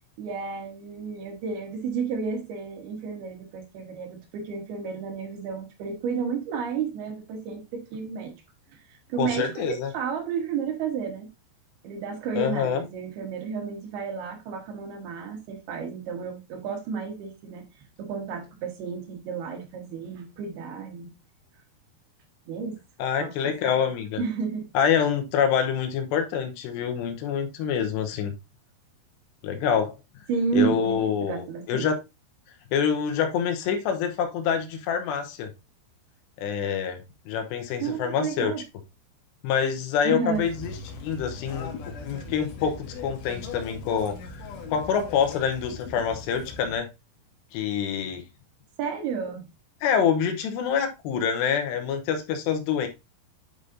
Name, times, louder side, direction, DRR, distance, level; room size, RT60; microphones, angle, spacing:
voice 1, 0.2-8.3 8.7-11.3 11.8-17.6 18.0-21.1 22.5-22.8 23.2-23.8 24.2-24.7 30.3-30.8 31.2-31.9 37.8-38.6 40.0-40.5 48.8-49.4, right 6 dB, 70° right, 3.2 m, -32 dB
voice 2, 9.2-9.9 12.4-12.8 23.0-24.2 24.7-28.3 29.4-30.0 30.5-32.0 32.7-35.5 36.4-38.5 39.4-40.7 41.0-44.3 44.7-46.9 47.5-48.2 49.8-52.9, left 7 dB, 85° left, 3.1 m, -26 dB
sound 1, 40.3-46.8, left 4 dB, 60° left, 2.5 m, -39 dB
9.4 x 5.0 x 2.6 m
omnidirectional pair, 4.8 m